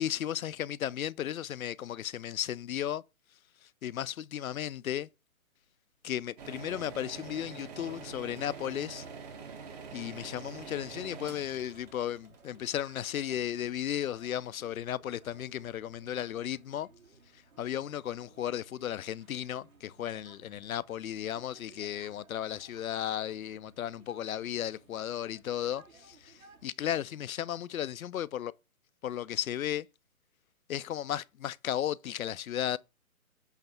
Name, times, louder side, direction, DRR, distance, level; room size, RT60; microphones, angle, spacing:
voice 1, 0.0-3.0 3.6-5.1 6.0-9.1 9.9-16.9 17.6-28.5 29.0-29.9 30.7-32.8, left 11 dB, 70° left, 0.5 m, -35 dB
sound 1, 6.4-13.3, right 5 dB, 30° right, 1.1 m, -46 dB
sound 2, 8.4-26.7, right 4 dB, 70° right, 3.8 m, -59 dB
8.1 x 3.3 x 5.8 m
figure-of-eight pair, 140°, 43 cm